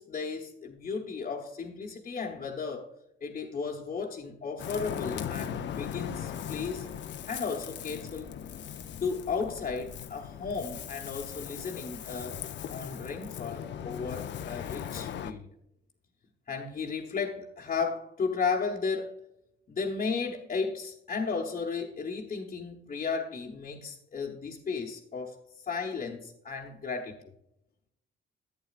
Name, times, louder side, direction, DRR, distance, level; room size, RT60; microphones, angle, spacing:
voice 1, 0.0-2.9 3.2-6.9 7.3-8.3 9.0-12.4 12.7-15.5 16.5-19.1 19.7-25.4 25.7-27.2, left 5 dB, 40° left, 1.2 m, -34 dB
Ocean, 4.6-15.3, left 9 dB, 65° left, 0.7 m, -39 dB
11.5 x 8.6 x 2.5 m
cardioid pair, 90°, 20 cm